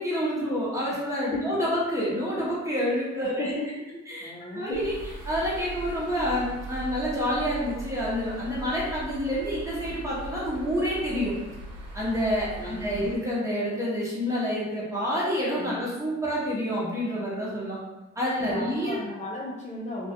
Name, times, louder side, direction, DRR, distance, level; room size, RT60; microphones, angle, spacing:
voice 1, 0.0-3.5 4.1-5.0 5.3-11.3 11.9-17.8 18.2-19.0, equal, 10° right, -7 dB, 1.0 m, -28 dB
voice 2, 4.2-4.8 12.5-13.1 15.6-15.8 18.5-20.1, left 2 dB, 25° left, -5 dB, 0.4 m, -36 dB
sound 1, 4.7-13.2, right 1 dB, 55° right, 0.8 m, -40 dB
2.3 x 2.2 x 2.7 m, 1.1 s
cardioid pair, 90°, 30 cm